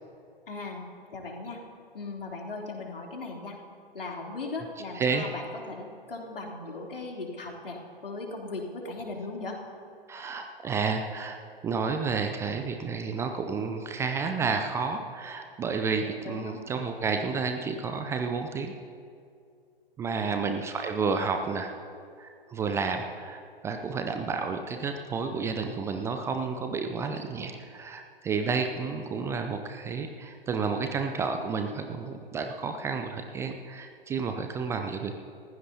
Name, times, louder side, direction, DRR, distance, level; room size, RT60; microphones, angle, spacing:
voice 1, 0.5-0.8 1.1-1.6 1.9-3.6 3.9-9.6 16.2-16.6 20.2-20.5, left 3 dB, 70° left, -1 dB, 3.3 m, -38 dB
voice 2, 4.9-5.3 10.1-11.4 11.6-18.7 20.0-21.7 22.2-35.1, right 5 dB, 10° right, 5 dB, 0.5 m, -31 dB
29.5 x 15.5 x 2.8 m, 2.3 s
figure-of-eight pair, 115°, 29 cm